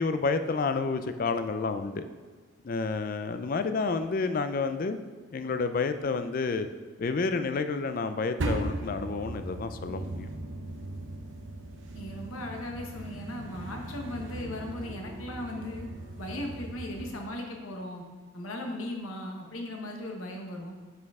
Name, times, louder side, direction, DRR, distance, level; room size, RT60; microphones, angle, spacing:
voice 1, 0.0-2.0 2.6-5.0 5.3-6.7 7.0-10.3, left 4 dB, 40° left, 10 dB, 0.3 m, -29 dB
sound 1, 8.4-17.2, right 1 dB, 65° right, 0.8 m, -38 dB
voice 2, 11.9-15.9 16.2-18.0 18.3-20.7, left 1 dB, 85° left, 2 dB, 1.0 m, -37 dB
6.7 x 6.5 x 3.6 m, 1.4 s
head